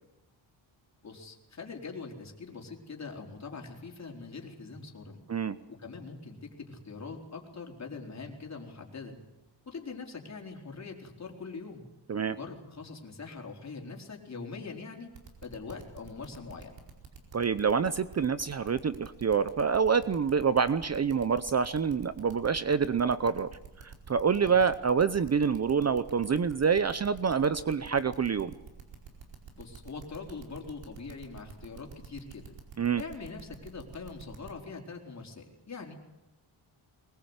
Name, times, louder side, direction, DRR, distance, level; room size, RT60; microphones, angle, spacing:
voice 1, 1.0-5.2 5.7-9.2 9.7-11.9 12.3-15.1 15.4-16.8 24.3-24.6 29.6-32.6 33.0-36.0, left 4 dB, 35° left, 1 dB, 4.3 m, -43 dB
sound 1, 15.1-34.5, right 6 dB, 70° right, 4.7 m, -48 dB
voice 2, 17.3-23.5 23.8-28.5 32.8-33.0, right 6 dB, 35° right, 13 dB, 0.7 m, -27 dB
22.5 x 21.0 x 8.1 m, 0.99 s
wide cardioid pair, 130°, 46 cm